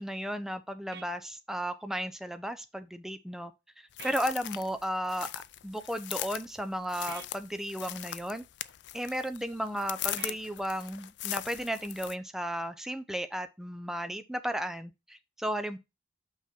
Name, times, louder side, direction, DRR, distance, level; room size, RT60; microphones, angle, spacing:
voice 1, 0.0-3.5 3.8-5.3 5.6-8.4 8.9-15.8, equal, 5° right, 0.5 m, -34 dB
sound 1, 0.9-1.1 4.0-4.2 7.1-7.3 10.2-10.4, right 7 dB, 60° right, 0.4 m, -45 dB
sound 2, 3.9-12.1, left 14 dB, 80° left, 0.4 m, -40 dB
5.9 x 4.6 x 4.3 m
head